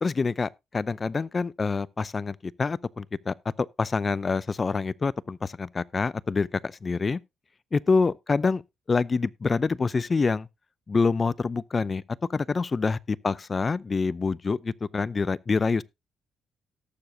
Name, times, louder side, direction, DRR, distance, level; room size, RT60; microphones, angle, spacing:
voice 1, 0.0-7.2 7.7-8.6 8.9-10.5 10.9-12.0 12.3-15.8, left 4 dB, 30° left, 0.5 m, -26 dB
18.5 x 7.0 x 2.7 m
cardioid pair, 90°, 0 cm